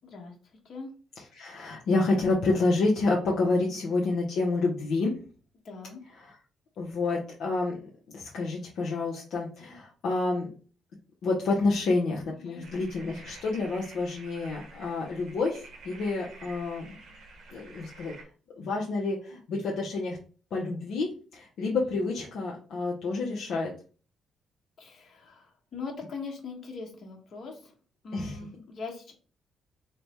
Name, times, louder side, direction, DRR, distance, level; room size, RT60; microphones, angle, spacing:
voice 1, 0.0-0.3 0.6-0.9 3.7-3.8 5.6-6.0 12.3-12.6 21.9-22.0 24.8-27.7 28.0-29.1, left 4 dB, 55° left, 0 dB, 1.2 m, -41 dB
voice 2, 1.3-5.1 6.2-6.3 6.8-7.8 8.1-10.5 11.2-17.0 17.5-18.1 18.6-20.2 20.5-23.7 28.1-28.4, left 3 dB, 75° left, -2 dB, 0.7 m, -28 dB
sound 1, 12.6-18.2, right 3 dB, 70° right, 0.9 m, -49 dB
3.2 x 2.2 x 4.1 m, 0.39 s
cardioid pair, 90°, 0 cm